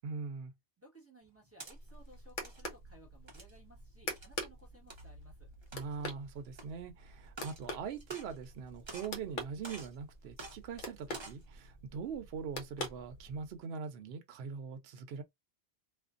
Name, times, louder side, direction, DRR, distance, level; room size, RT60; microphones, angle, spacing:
voice 1, 0.0-0.5 5.7-15.2, right 6 dB, 70° right, 0.9 m, -42 dB
voice 2, 0.8-5.5, right 1 dB, 15° right, 1.2 m, -60 dB
sound 1, 1.2-1.8 2.3-2.6 3.3-3.6 4.1-4.3 4.9-5.0 5.6-6.1 6.6-6.7 7.3-7.6 8.0-8.6 8.9-9.2 9.6-10.0 10.4-10.6 11.0-11.4, right 2 dB, 30° right, 0.6 m, -48 dB
sound 2, 1.7-13.6, left 1 dB, 55° left, 0.8 m, -46 dB
2.5 x 2.4 x 2.4 m
omnidirectional pair, 1.1 m